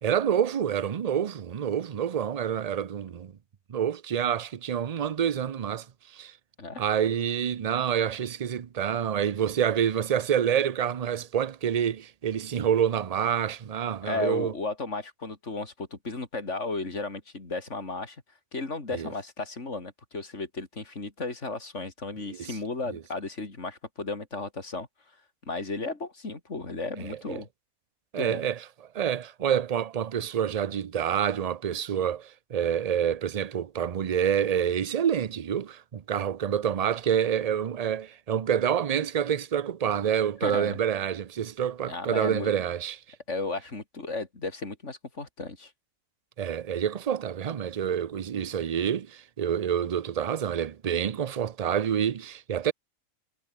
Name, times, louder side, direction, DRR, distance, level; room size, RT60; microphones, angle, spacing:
voice 1, 0.0-3.3 3.7-5.9 6.1-6.3 6.8-14.5 18.9-19.1 22.4-22.5 22.9-23.0 27.0-27.4 28.1-28.6 28.9-43.0 46.4-52.7, right 8 dB, 50° right, 0.5 m, -27 dB
voice 2, 14.0-18.2 18.5-24.9 25.5-27.5 28.2-28.4 40.4-40.8 41.9-42.5 43.3-45.7, left 3 dB, 60° left, 3.7 m, -34 dB
omnidirectional pair, 1.4 m